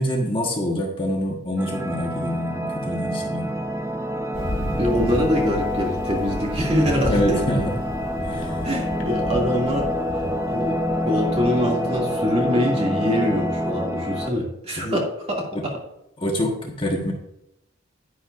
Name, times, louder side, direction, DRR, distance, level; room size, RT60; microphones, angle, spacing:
voice 1, 0.0-3.6 7.1-7.7 8.2-8.7 14.8-14.9 15.5-15.6 16.2-17.1, equal, 25° left, 0 dB, 1.5 m, -25 dB
sound 1, 1.6-14.3, equal, 15° right, 0.5 m, -27 dB
Thunder, 4.3-12.6, left 1 dB, 80° left, 1.7 m, -33 dB
voice 2, 4.8-7.4 8.6-9.9 10.5-15.8, left 1 dB, 30° right, -2 dB, 2.3 m, -24 dB
10.5 x 10.0 x 2.5 m, 0.80 s
head